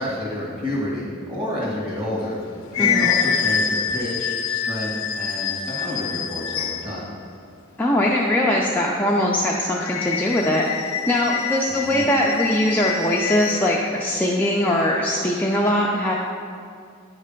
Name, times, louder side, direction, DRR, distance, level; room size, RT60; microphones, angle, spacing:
voice 1, 0.0-2.4 2.8-7.1 11.7-12.1, left 1 dB, 25° right, -6 dB, 1.8 m, -29 dB
sound 1, 2.2-7.0 9.7-13.7, left 7 dB, 80° left, 0.5 m, -26 dB
voice 2, 2.8-3.1 7.8-10.6 11.1-16.1, left 1 dB, 10° left, -4 dB, 0.3 m, -21 dB
9.2 x 3.2 x 5.1 m, 2.3 s
head